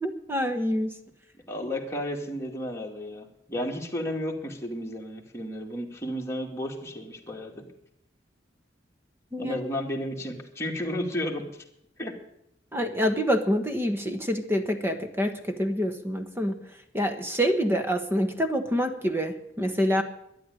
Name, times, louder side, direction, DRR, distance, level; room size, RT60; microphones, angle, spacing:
voice 1, 0.0-0.9 9.3-9.5 12.7-16.6 16.9-20.0, equal, 15° right, 7 dB, 1.3 m, -26 dB
voice 2, 1.5-7.6 9.4-11.5 12.0-12.2, left 1 dB, 15° left, 0 dB, 2.3 m, -33 dB
12.0 x 10.5 x 9.9 m, 0.77 s
head